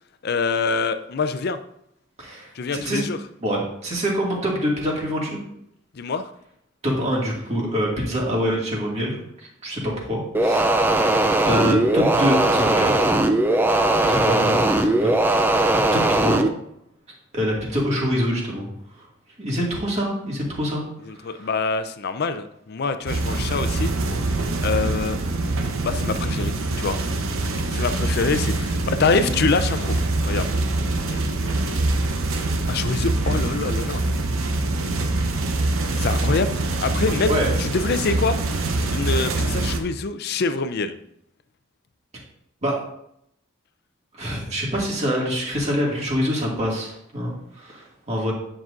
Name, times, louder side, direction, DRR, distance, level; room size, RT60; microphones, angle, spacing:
voice 1, 0.2-1.6 2.5-3.2 5.9-6.3 13.9-14.2 21.1-24.2 24.6-25.2 25.8-27.0 27.7-30.0 30.3-30.5 31.1-31.6 32.7-34.0 36.0-36.5 36.8-41.0, left 4 dB, 50° left, 11 dB, 0.5 m, -25 dB
voice 2, 2.2-3.0 3.4-5.4 6.8-9.2 9.6-10.7 11.5-13.2 14.1-14.6 15.0-15.4 15.9-16.4 17.3-18.7 19.4-20.8 21.4-21.5 36.9-37.0 37.3-37.5 42.6-42.8 44.2-48.3, equal, 35° right, -3 dB, 2.0 m, -25 dB
sound 1, 10.3-16.5, right 1 dB, 10° right, 0.3 m, -19 dB
sound 2, 23.1-39.8, right 2 dB, 80° right, 0.8 m, -24 dB
9.5 x 6.0 x 2.5 m, 0.75 s
head